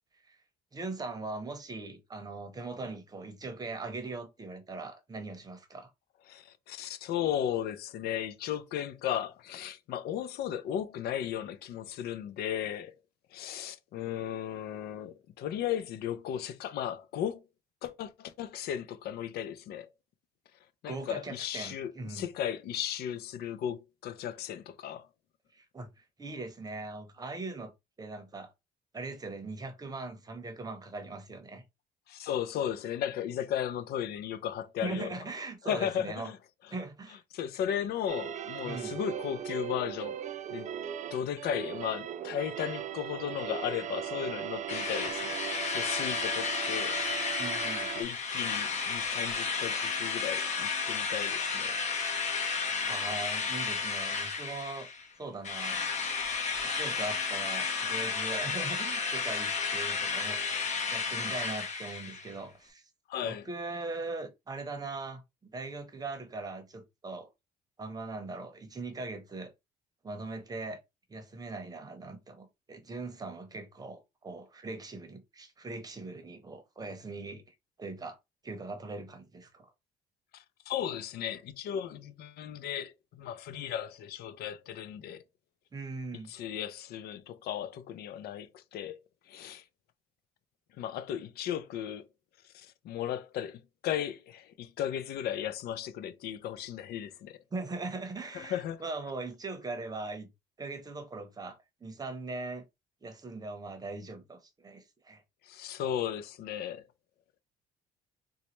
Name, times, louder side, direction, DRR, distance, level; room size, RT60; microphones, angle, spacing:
voice 1, 0.7-5.9 20.9-22.3 25.5-27.7 28.0-28.5 28.9-31.6 34.8-36.3 36.7-37.2 38.6-39.0 47.4-47.9 52.9-54.9 55.2-55.8 56.7-60.4 60.9-62.8 63.2-67.3 67.8-69.5 70.0-70.8 71.1-77.4 77.8-78.2 78.4-79.7 85.7-86.3 97.5-100.3 100.6-102.6 103.0-105.2, right 3 dB, 20° right, 0.8 m, -40 dB
voice 2, 6.3-13.0 13.3-17.4 17.8-19.9 20.8-25.1 32.1-35.2 35.6-36.4 37.3-40.2 40.5-40.7 41.1-45.4 45.7-47.0 48.0-51.8 63.1-63.5 80.3-85.2 86.3-89.0 89.3-89.6 90.8-92.1 92.4-97.4 98.3-98.8 105.4-106.9, left 10 dB, 70° left, 0.5 m, -35 dB
sound 1, 38.1-48.0, right 9 dB, 45° right, 0.5 m, -38 dB
Drill, 44.7-55.1 55.4-62.3, left 5 dB, 45° left, 1.1 m, -32 dB
4.0 x 2.3 x 3.1 m
cardioid pair, 110°, 17 cm